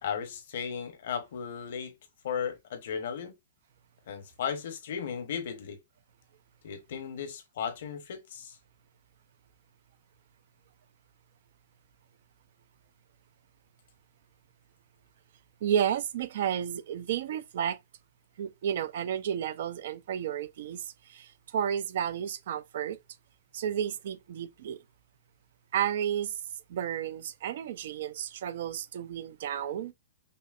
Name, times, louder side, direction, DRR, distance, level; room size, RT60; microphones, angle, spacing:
voice 1, 0.0-1.9 2.2-3.3 4.1-5.8 6.6-8.6, left 7 dB, 70° left, 0.9 m, -35 dB
voice 2, 15.6-17.8 18.4-23.0 23.5-24.8 25.7-26.3 26.7-29.9, right 9 dB, 65° right, 0.5 m, -32 dB
5.5 x 2.1 x 2.4 m
hypercardioid pair, 140°, 0 cm